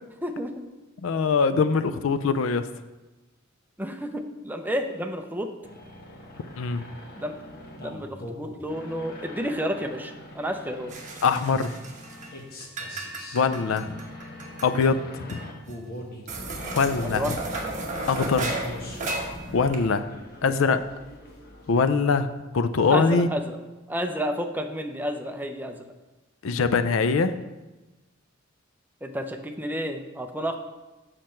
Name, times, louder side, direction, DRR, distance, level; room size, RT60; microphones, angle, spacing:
voice 1, 0.2-0.6 3.8-5.5 7.2-7.4 7.8-10.9 17.0-17.4 20.4-20.7 22.9-23.6 23.9-25.8 29.0-30.6, equal, 10° right, 5 dB, 0.6 m, -31 dB
voice 2, 1.0-2.7 6.6-6.9 11.2-11.8 13.3-14.0 14.6-15.0 15.3-15.4 16.7-17.4 18.1-18.6 19.5-20.1 20.4-20.8 21.7-23.3 26.4-27.4, left 5 dB, 75° left, 12 dB, 0.4 m, -23 dB
sound 1, 5.6-22.0, left 1 dB, 50° left, 1.3 m, -43 dB
sound 2, 10.9-12.3 12.6-14.9 15.3-15.4 15.7-15.8 16.3-19.8, right 2 dB, 40° right, 1.1 m, -34 dB
7.5 x 6.5 x 4.4 m, 1.1 s
head